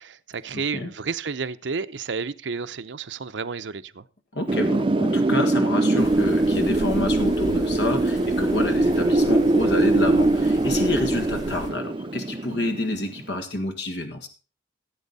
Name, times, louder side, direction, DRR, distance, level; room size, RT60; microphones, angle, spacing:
voice 1, 0.0-4.0, right 5 dB, 85° right, 0.7 m, -31 dB
voice 2, 0.5-0.9 4.3-14.3, left 2 dB, 70° left, 1.7 m, -28 dB
Wind, 4.5-13.2, right 2 dB, 30° right, 0.5 m, -22 dB
sound 1, 6.0-11.7, equal, 45° left, 7.0 m, -38 dB
15.5 x 8.3 x 4.1 m
head